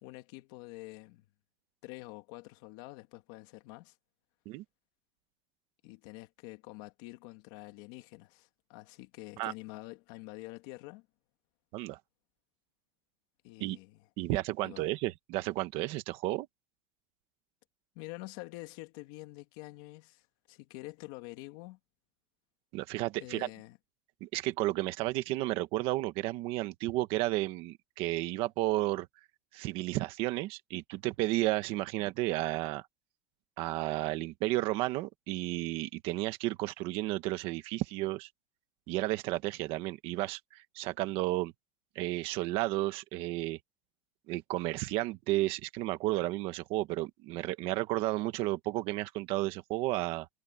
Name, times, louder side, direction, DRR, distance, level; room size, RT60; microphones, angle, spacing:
voice 1, 0.0-1.3 1.8-3.9 5.8-11.1 13.4-14.8 17.9-21.8 23.2-23.8, left 21 dB, 55° left, 2.2 m, -47 dB
voice 2, 14.2-16.5 22.7-23.5 24.2-29.1 29.5-32.8 33.6-38.3 38.9-41.5 41.9-43.6 44.3-50.3, right 17 dB, 40° right, 1.3 m, -32 dB
supercardioid pair, 175°, 14 cm